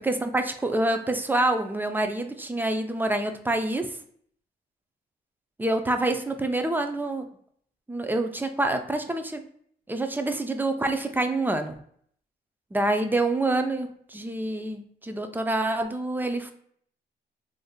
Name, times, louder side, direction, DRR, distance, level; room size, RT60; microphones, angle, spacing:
voice 1, 0.0-3.9 5.6-7.3 7.9-9.4 9.9-11.8 12.7-16.5, right 2 dB, 10° right, 7 dB, 0.4 m, -27 dB
3.5 x 2.6 x 2.3 m, 0.63 s
cardioid pair, 90°, 18 cm